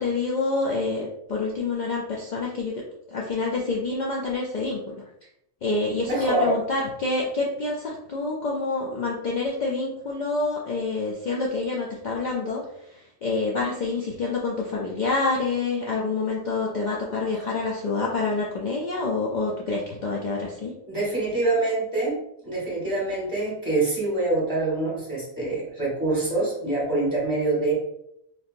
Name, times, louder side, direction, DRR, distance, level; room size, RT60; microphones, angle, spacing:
voice 1, 0.0-2.7 3.1-4.9 5.6-20.7, left 3 dB, 70° left, -3 dB, 0.4 m, -27 dB
voice 2, 6.0-6.6 20.9-27.7, right 2 dB, 15° right, -7 dB, 1.5 m, -25 dB
3.4 x 2.8 x 2.5 m, 0.77 s
omnidirectional pair, 1.4 m